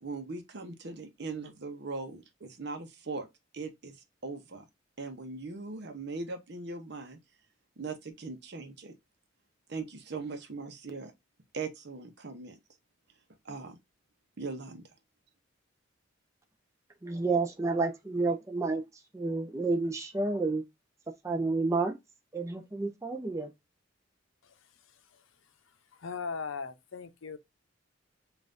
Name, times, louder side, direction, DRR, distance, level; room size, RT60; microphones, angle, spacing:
voice 1, 0.0-3.3 3.5-4.6 5.0-7.2 7.8-8.9 9.7-11.1 11.5-12.6 13.4-13.8 14.4-14.8, right 3 dB, 60° right, 0.8 m, -40 dB
voice 2, 17.0-18.8 19.1-20.6 21.2-21.9 22.3-23.5, right 3 dB, 15° right, 0.6 m, -30 dB
voice 3, 25.9-27.4, left 5 dB, 90° left, 0.6 m, -38 dB
5.3 x 2.5 x 2.5 m
head